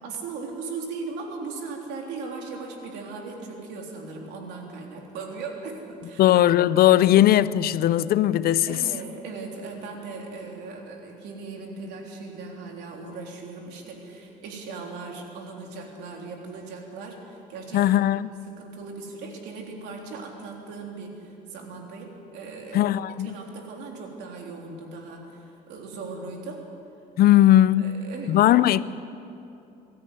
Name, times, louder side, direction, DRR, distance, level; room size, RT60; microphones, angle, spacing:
voice 1, 0.0-6.3 8.7-17.9 18.5-22.9 23.2-26.7 27.8-28.7, right 4 dB, 85° right, 3.7 m, -38 dB
voice 2, 6.2-8.8 17.7-18.3 22.7-23.4 27.2-28.0 28.3-28.8, left 13 dB, 65° left, 0.6 m, -18 dB
22.5 x 13.5 x 9.3 m
cardioid pair, 110°, 17 cm